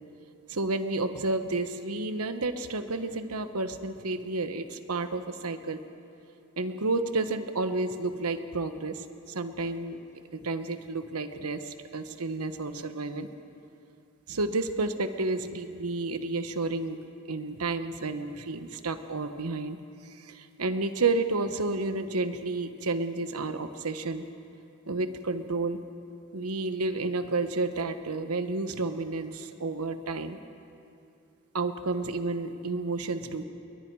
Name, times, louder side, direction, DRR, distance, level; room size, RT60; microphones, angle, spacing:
voice 1, 0.5-5.8 6.6-10.0 10.3-13.3 14.3-17.0 17.3-19.8 20.2-24.3 24.9-25.8 26.3-30.4 31.5-33.4, right 3 dB, 85° right, 9 dB, 1.2 m, -31 dB
29.0 x 22.0 x 4.8 m, 2.6 s
head